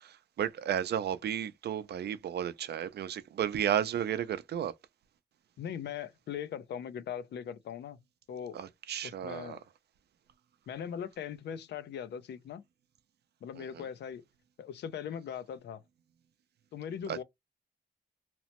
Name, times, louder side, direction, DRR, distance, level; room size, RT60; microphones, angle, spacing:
voice 1, 0.0-4.7 8.5-9.6 13.6-13.8 17.1-17.2, right 9 dB, 70° right, 0.4 m, -33 dB
voice 2, 5.6-8.0 8.3-8.6 9.0-9.6 10.7-12.6 13.4-14.2 14.6-15.8 16.7-17.2, left 8 dB, 80° left, 0.4 m, -40 dB
2.8 x 2.1 x 2.9 m
wide cardioid pair, 115°, 18 cm